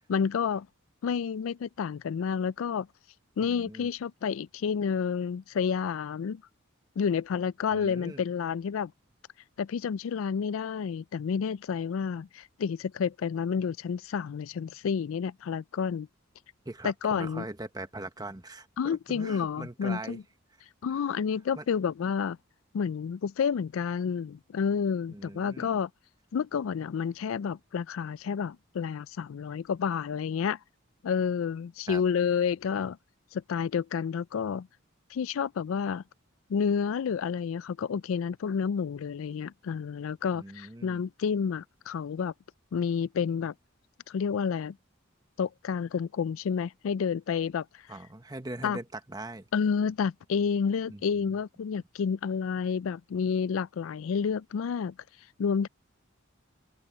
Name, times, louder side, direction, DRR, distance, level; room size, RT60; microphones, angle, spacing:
voice 1, 0.1-0.7 1.0-2.9 3.4-6.4 7.0-8.9 9.6-16.1 16.8-17.4 18.8-20.2 20.8-22.4 22.7-25.9 26.3-30.6 31.0-33.0 33.3-34.7 35.1-36.0 36.5-42.3 42.7-43.5 44.1-44.8 45.4-47.7 48.6-48.8 49.5-54.9 55.4-55.7, left 6 dB, 75° left, 0.4 m, -30 dB
voice 2, 3.4-3.9 7.7-8.2 16.6-20.2 21.5-21.6 25.1-25.8 31.9-32.0 40.3-41.0 47.9-49.5 50.9-51.3, right 2 dB, 20° right, 1.2 m, -41 dB
open air
head